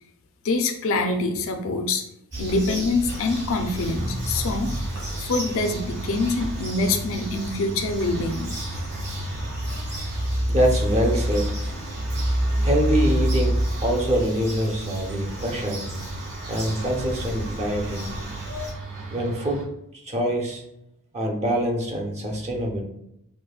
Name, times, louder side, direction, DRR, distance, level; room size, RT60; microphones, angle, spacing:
voice 1, 0.4-2.0 2.4-4.7 5.2-8.5, left 3 dB, 65° left, 5 dB, 0.5 m, -25 dB
Bird vocalization bird call bird song, 2.3-18.7, equal, 50° right, 1.5 m, -29 dB
sound 1, 3.1-19.6, right 3 dB, 65° right, 0.9 m, -36 dB
voice 2, 10.5-11.6 12.6-15.9 16.5-18.1 19.1-19.6 20.0-20.6 21.1-22.8, equal, 30° right, 1 dB, 0.6 m, -25 dB
5.1 x 2.1 x 2.3 m, 0.80 s
head